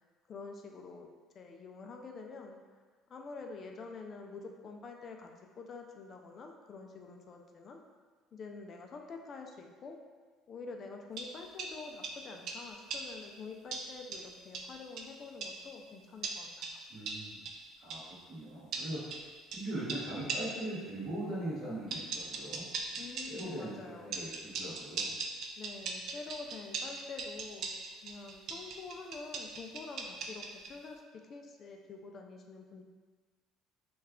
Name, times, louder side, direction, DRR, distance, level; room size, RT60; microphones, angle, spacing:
voice 1, 0.3-1.1 1.3-2.6 3.1-7.8 8.3-10.0 10.5-16.8 23.0-24.2 25.6-27.7 28.0-32.8, left 4 dB, 35° left, 3 dB, 0.4 m, -47 dB
sound 1, 11.2-13.3 13.7-15.7 16.2-18.1 18.7-20.7 21.9-23.6 24.1-30.8, right 4 dB, 50° right, 0.3 m, -41 dB
voice 2, 16.9-17.4 17.8-19.0 19.5-22.6 22.9-25.2, right 1 dB, 30° right, -10 dB, 1.1 m, -40 dB
3.2 x 2.3 x 3.5 m, 1.5 s
cardioid pair, 150°, 0 cm